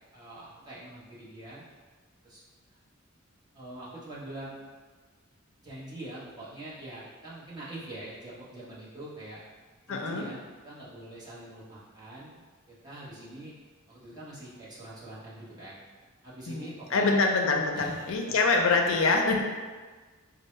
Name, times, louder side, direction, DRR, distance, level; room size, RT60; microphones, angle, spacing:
voice 1, 0.1-1.6 2.2-2.4 3.5-4.6 5.6-9.4 9.9-12.4 12.7-13.5 13.9-15.8 16.2-17.2 17.7-18.3, right 1 dB, 20° right, -9 dB, 0.9 m, -44 dB
voice 2, 9.9-10.3 16.5-19.4, left 3 dB, 65° left, 2 dB, 0.4 m, -25 dB
4.2 x 2.0 x 3.1 m, 1.4 s
head